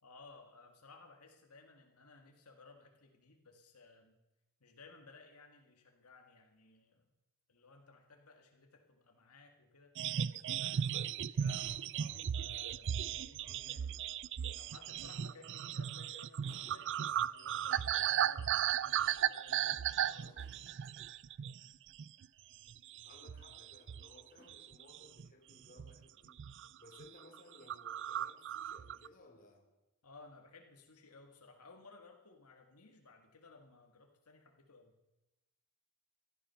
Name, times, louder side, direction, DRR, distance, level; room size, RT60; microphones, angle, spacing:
voice 1, 0.0-4.2 4.6-7.1 7.5-9.9 10.3-14.0 14.5-21.0 30.0-35.0, left 3 dB, 90° left, 1.9 m, -59 dB
sound 1, 10.0-21.7 22.0-22.3 22.7-24.2 24.5-25.3 25.8-26.0 26.3-26.7 27.0-27.1 27.3-27.4 27.7-29.1, right 9 dB, 55° right, 0.4 m, -36 dB
sound 2, 15.0-15.8 16.4-17.2 19.5-20.9 21.9-22.0 22.8-22.9 24.4-24.5, equal, 30° right, 5.6 m, -64 dB
voice 2, 23.0-26.5 26.8-29.7, left 2 dB, 40° left, 2.8 m, -60 dB
16.5 x 12.5 x 5.8 m
head